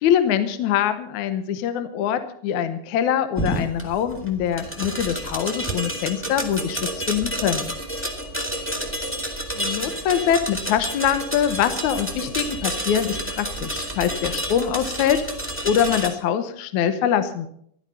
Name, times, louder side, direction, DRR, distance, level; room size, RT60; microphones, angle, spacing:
voice 1, 0.0-7.7 9.6-15.2 15.6-17.5, left 9 dB, 75° left, 11 dB, 1.9 m, -23 dB
sound 1, 3.4-16.1, right 1 dB, 5° left, 1.1 m, -30 dB
15.0 x 11.5 x 5.6 m, 0.65 s
omnidirectional pair, 4.3 m